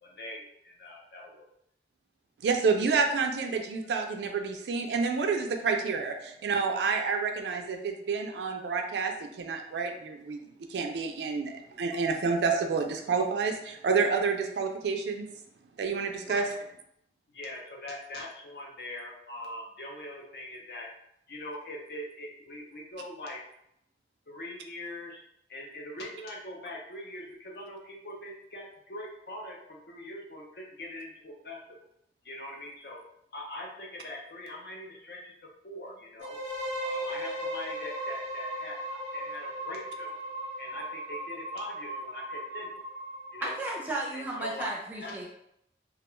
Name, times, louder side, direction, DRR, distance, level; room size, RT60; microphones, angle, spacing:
voice 1, 0.0-1.5 16.3-16.5 17.3-20.9 21.3-23.4 24.3-25.2 25.5-31.6 32.2-33.0 33.3-36.4 36.8-40.2 40.6-42.7 43.3-43.6 44.1-44.7 45.0-45.1, left 1 dB, 60° left, -1 dB, 0.6 m, -42 dB
voice 2, 2.4-10.4 10.7-15.3 15.8-16.4, right 5 dB, 75° right, 4 dB, 0.3 m, -29 dB
sound 1, 36.2-44.0, right 1 dB, 80° left, 1.1 m, -37 dB
voice 3, 43.4-45.2, right 1 dB, 10° right, -3 dB, 0.5 m, -34 dB
2.3 x 2.2 x 3.0 m, 0.77 s
head